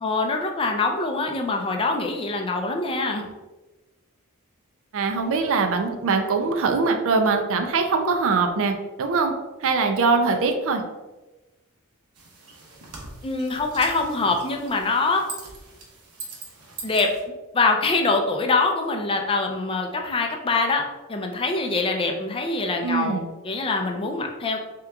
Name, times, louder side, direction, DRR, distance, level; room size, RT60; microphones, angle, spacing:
voice 1, 0.0-3.2 13.2-15.2 16.8-17.1 17.5-20.8 21.1-23.2 23.4-24.6, left 3 dB, 25° left, 3 dB, 0.4 m, -24 dB
voice 2, 4.9-9.3 9.6-10.8 22.8-23.3, right 4 dB, 65° right, 5 dB, 0.5 m, -22 dB
sound 1, 12.2-17.2, right 3 dB, 90° right, 0.9 m, -41 dB
3.4 x 2.9 x 3.5 m, 1.1 s
head